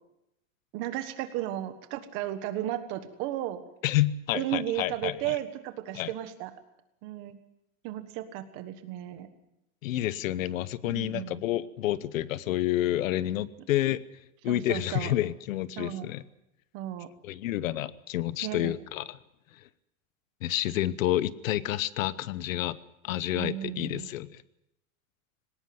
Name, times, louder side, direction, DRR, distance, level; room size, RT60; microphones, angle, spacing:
voice 1, 0.7-3.6 4.3-6.5 7.0-7.4 7.8-9.3 10.8-11.4 14.4-15.1 15.8-16.1 16.7-17.1 18.4-18.7 23.3-24.1, right 13 dB, 30° right, 10 dB, 1.4 m, -34 dB
voice 2, 3.8-5.4 5.9-6.1 9.8-14.0 14.4-16.2 17.2-19.2 20.4-22.8 23.0-24.4, left 14 dB, 75° left, 18 dB, 1.0 m, -29 dB
19.5 x 18.5 x 7.8 m, 0.82 s
supercardioid pair, 180°, 40 cm